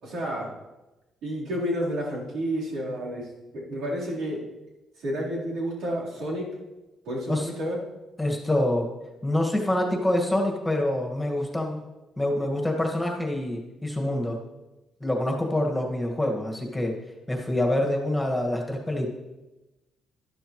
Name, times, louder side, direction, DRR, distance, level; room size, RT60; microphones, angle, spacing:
voice 1, 0.0-0.5 1.2-4.4 5.0-6.5 7.1-7.8, equal, 80° right, -6 dB, 4.0 m, -30 dB
voice 2, 8.2-8.9 9.2-11.8 12.2-14.4 15.0-17.0 17.3-19.1, left 1 dB, 10° left, 0 dB, 1.9 m, -26 dB
12.0 x 11.5 x 3.2 m, 1.1 s
cardioid pair, 90°, 0 cm